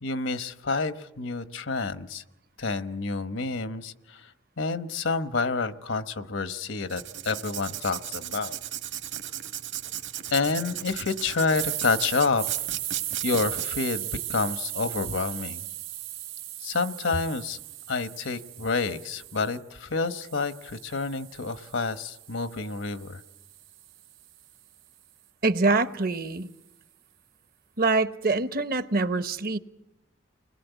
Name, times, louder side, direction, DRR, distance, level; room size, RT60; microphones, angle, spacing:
voice 1, 0.0-2.2 2.6-4.3 4.6-8.6 10.3-12.4 13.2-15.6 16.6-17.6 17.9-23.2, left 4 dB, 80° left, 12 dB, 1.1 m, -29 dB
Writing, 6.9-13.7, right 11 dB, 65° right, 1.6 m, -36 dB
sound 1, 11.5-19.6 20.1-24.3, right 14 dB, 90° right, 1.3 m, -37 dB
voice 2, 25.4-26.5 27.8-29.6, right 3 dB, 50° right, 12 dB, 0.9 m, -24 dB
29.5 x 20.5 x 8.2 m, 0.97 s
head